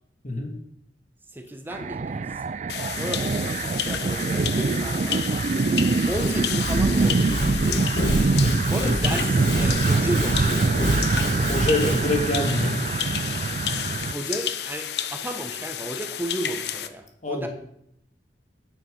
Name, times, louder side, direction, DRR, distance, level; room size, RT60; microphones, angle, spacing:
voice 1, 1.3-2.4 3.0-5.4 6.1-7.4 8.7-11.3 13.9-17.5, right 1 dB, 10° right, 5 dB, 0.9 m, -34 dB
sound 1, 1.7-14.1, right 4 dB, 40° right, 0.4 m, -24 dB
sound 2, 2.7-16.9, left 10 dB, 65° left, 0.7 m, -31 dB
Sawing / Wood, 5.9-12.1, left 1 dB, 85° left, 4.5 m, -29 dB
voice 2, 11.5-12.8 17.2-17.5, left 2 dB, 45° left, 3 dB, 2.1 m, -25 dB
9.8 x 8.8 x 5.4 m, 0.75 s
head